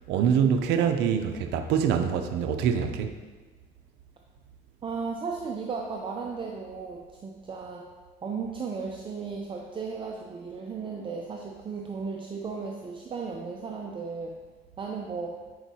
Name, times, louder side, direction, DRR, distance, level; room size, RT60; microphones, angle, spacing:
voice 1, 0.1-3.1, right 7 dB, 85° right, 7 dB, 0.5 m, -24 dB
voice 2, 4.8-7.9 8.2-14.3 14.8-15.4, right 5 dB, 30° right, 0 dB, 0.5 m, -35 dB
7.7 x 4.6 x 2.8 m, 1.3 s
cardioid pair, 110°, 17 cm